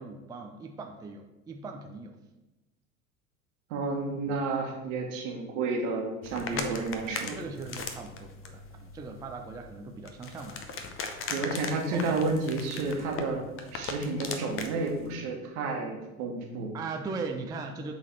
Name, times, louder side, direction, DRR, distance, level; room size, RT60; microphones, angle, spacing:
voice 1, 0.0-2.2 4.3-4.4 6.5-10.6 11.9-12.2 12.9-13.1 16.7-17.9, right 4 dB, 10° right, 3 dB, 0.4 m, -39 dB
voice 2, 3.7-7.4 11.3-13.4 13.7-16.7, right 3 dB, 55° right, 1 dB, 1.6 m, -31 dB
sound 1, 6.2-15.1, left 4 dB, 30° left, 0.8 m, -39 dB
7.4 x 4.0 x 4.5 m, 1.0 s
figure-of-eight pair, 75°, 44 cm